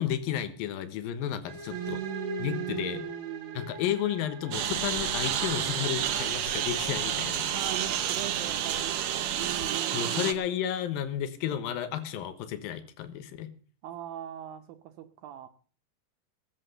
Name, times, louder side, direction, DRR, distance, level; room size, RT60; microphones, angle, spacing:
voice 1, 0.0-2.0 2.4-3.0 3.5-7.5 9.9-13.5, left 10 dB, 85° left, 3.0 m, -32 dB
sound 1, 1.5-9.1, right 1 dB, 50° right, 2.3 m, -44 dB
voice 2, 1.7-3.7 7.5-10.3 13.8-15.5, right 13 dB, 80° right, 2.7 m, -39 dB
sound 2, 4.5-9.7, left 5 dB, 65° left, 2.1 m, -45 dB
Engine, 4.5-10.3, right 10 dB, 65° right, 1.8 m, -30 dB
18.0 x 7.9 x 6.6 m
omnidirectional pair, 4.1 m